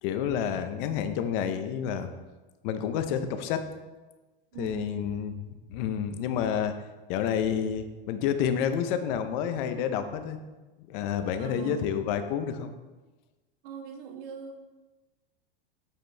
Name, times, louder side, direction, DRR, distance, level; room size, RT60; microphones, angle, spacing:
voice 1, 0.0-2.1 2.6-3.7 4.6-6.7 7.1-10.4 10.9-12.7, left 8 dB, 55° left, 9 dB, 0.8 m, -29 dB
voice 2, 4.5-5.0 11.4-11.9 13.6-14.6, right 5 dB, 65° right, 4 dB, 1.4 m, -40 dB
7.6 x 6.6 x 3.3 m, 1.2 s
supercardioid pair, 130°, 30 cm